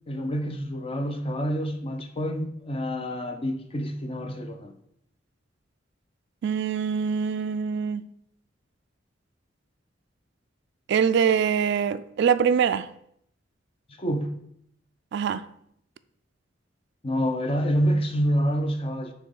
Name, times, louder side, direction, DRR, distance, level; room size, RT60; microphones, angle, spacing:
voice 1, 0.1-4.7 14.0-14.3 17.0-19.1, equal, 30° left, 0.7 m, -27 dB
voice 2, 6.4-8.1 10.9-12.9 15.1-15.5, right 7 dB, 65° right, 0.3 m, -24 dB
7.6 x 3.1 x 5.3 m
head